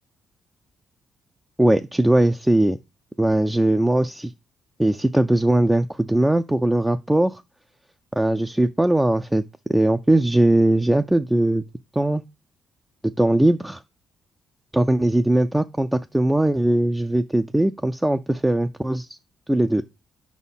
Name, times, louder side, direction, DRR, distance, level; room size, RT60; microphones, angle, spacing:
voice 1, 1.6-2.8 3.2-4.3 4.8-7.4 8.1-9.4 9.7-11.6 11.9-12.2 13.2-13.8 14.7-19.2 19.5-19.8, right 1 dB, 10° right, 0.3 m, -20 dB
4.8 x 4.1 x 5.5 m
cardioid pair, 95°, 0 cm